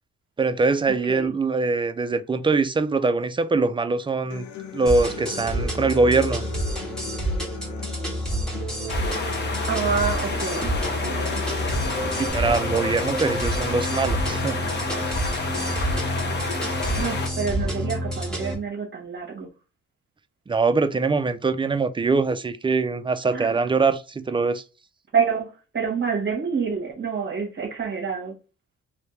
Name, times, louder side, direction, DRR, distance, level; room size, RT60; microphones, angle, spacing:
voice 1, 0.4-4.5 4.7-6.4 12.2-14.6 20.5-24.6, right 4 dB, 15° right, 0.3 m, -23 dB
Human voice / Acoustic guitar, 4.3-12.3, left 9 dB, 70° left, 0.7 m, -39 dB
sound 1, 4.9-18.5, equal, ahead, 1.5 m, -28 dB
sound 2, 8.9-17.3, left 3 dB, 35° left, 1.0 m, -30 dB
voice 2, 9.7-11.4 17.0-19.5 23.3-23.6 25.1-25.5 25.7-28.3, right 6 dB, 40° right, 1.3 m, -27 dB
3.3 x 2.7 x 3.2 m
cardioid pair, 90°, 30 cm